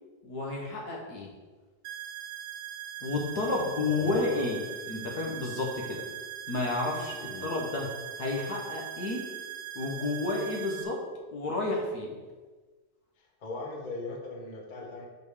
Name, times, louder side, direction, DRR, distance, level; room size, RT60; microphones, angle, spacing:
voice 1, 0.2-1.3 3.0-6.0 6.5-7.9 8.2-9.2 9.7-11.0 11.3-12.2, left 2 dB, 70° left, -1 dB, 1.6 m, -31 dB
sound 1, 1.8-10.8, right 11 dB, 70° right, 0.9 m, -41 dB
voice 2, 3.4-4.5 7.3-7.5 13.2-15.1, left 3 dB, 35° left, 0 dB, 0.9 m, -39 dB
5.2 x 4.7 x 4.8 m, 1.3 s
omnidirectional pair, 1.8 m